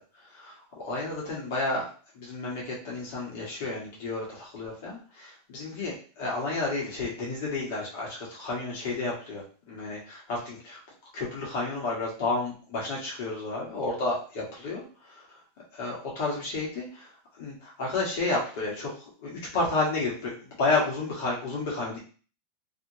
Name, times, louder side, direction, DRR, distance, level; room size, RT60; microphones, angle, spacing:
voice 1, 0.8-1.9 2.2-10.8 11.1-14.8 15.7-16.9 17.4-18.9 19.2-20.3 20.6-22.0, left 3 dB, 65° left, -4 dB, 1.4 m, -31 dB
3.0 x 2.8 x 2.7 m, 0.39 s
supercardioid pair, 130°, 0 cm